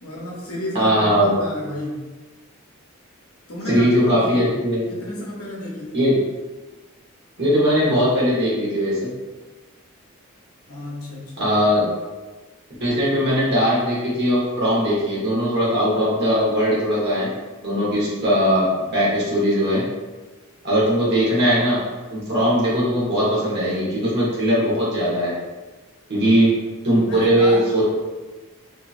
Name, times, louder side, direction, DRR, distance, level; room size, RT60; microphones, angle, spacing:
voice 1, 0.0-2.0 3.5-4.5 4.9-6.2 10.7-11.5 27.0-27.8, left 1 dB, 75° left, -4 dB, 0.8 m, -32 dB
voice 2, 0.7-1.3 3.7-4.8 5.9-6.1 7.4-9.1 11.4-11.8 12.8-17.3 17.6-19.8 20.6-21.8 22.1-25.3 26.1-26.5 26.8-27.8, equal, 50° right, -7 dB, 1.1 m, -19 dB
2.8 x 2.6 x 2.4 m, 1.2 s
head